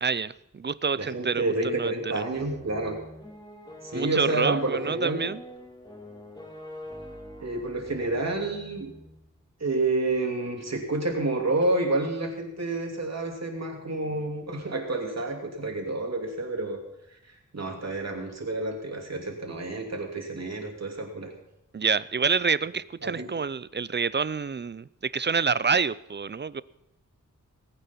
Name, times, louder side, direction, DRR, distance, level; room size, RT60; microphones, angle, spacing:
voice 1, 0.0-2.2 3.9-5.4 21.7-26.6, right 5 dB, 35° right, 19 dB, 0.4 m, -27 dB
voice 2, 0.9-3.0 3.8-5.2 7.4-8.9 9.6-16.8 17.1-21.3 23.0-23.3, right 2 dB, 55° right, 1 dB, 2.9 m, -29 dB
sound 1, 2.3-9.3, equal, 15° left, 2.4 m, -44 dB
19.5 x 8.9 x 5.8 m, 0.86 s
wide cardioid pair, 100°, 32 cm